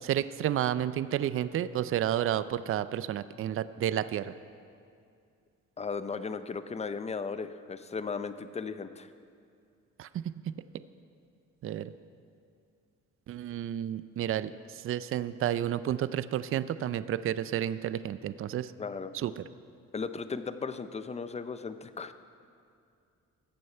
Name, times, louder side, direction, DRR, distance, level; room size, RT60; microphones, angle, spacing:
voice 1, 0.0-4.3 10.0-10.5 11.6-11.9 13.3-18.7 19.1-19.4, right 11 dB, 45° right, 15 dB, 0.4 m, -31 dB
voice 2, 5.8-9.1 18.8-19.2 19.9-22.1, left 5 dB, 20° left, 12 dB, 0.5 m, -36 dB
14.0 x 7.7 x 5.5 m, 2.4 s
cardioid pair, 90°, 30 cm